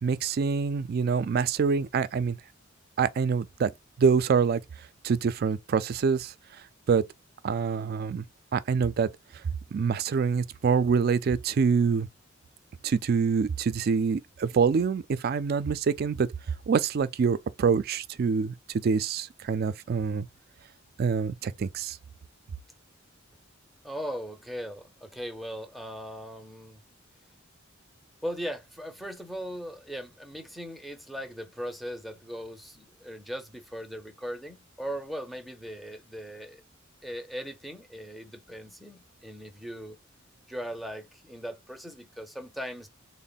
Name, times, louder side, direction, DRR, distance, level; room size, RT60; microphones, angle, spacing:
voice 1, 0.0-2.4 3.0-3.7 4.0-4.6 5.0-6.3 6.9-7.0 7.4-8.2 8.5-9.1 9.7-12.1 12.8-16.3 16.7-18.5 18.8-20.3 21.0-22.0, right 5 dB, 50° right, 0.3 m, -25 dB
voice 2, 23.8-26.8 28.2-36.6 37.0-40.0 40.5-42.9, equal, ahead, 0.5 m, -39 dB
3.6 x 2.1 x 4.0 m
head